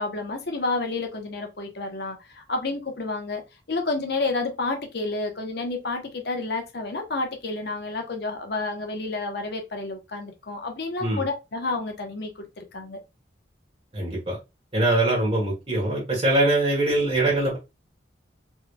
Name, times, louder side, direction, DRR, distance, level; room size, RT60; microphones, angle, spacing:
voice 1, 0.0-3.4 3.7-13.0, left 3 dB, 60° left, 0.8 m, -30 dB
voice 2, 13.9-14.4 14.7-17.6, right 1 dB, 30° right, 1.3 m, -22 dB
3.9 x 3.2 x 2.2 m
head